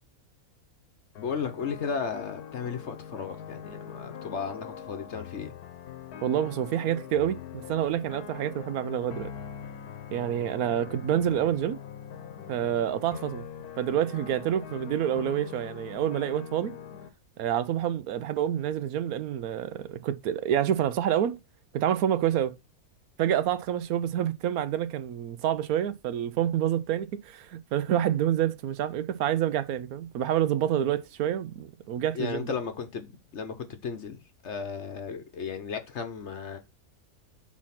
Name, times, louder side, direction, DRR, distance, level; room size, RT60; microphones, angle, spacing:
sound 1, 1.2-17.1, left 8 dB, 80° left, 1.3 m, -43 dB
voice 1, 1.2-5.5 32.1-36.6, left 6 dB, 55° left, 1.0 m, -35 dB
voice 2, 6.2-9.3 10.1-11.8 12.5-13.4 13.8-16.7 17.4-21.4 21.7-22.5 23.2-32.6, right 10 dB, 75° right, 1.0 m, -28 dB
6.1 x 4.2 x 5.7 m
omnidirectional pair, 1.6 m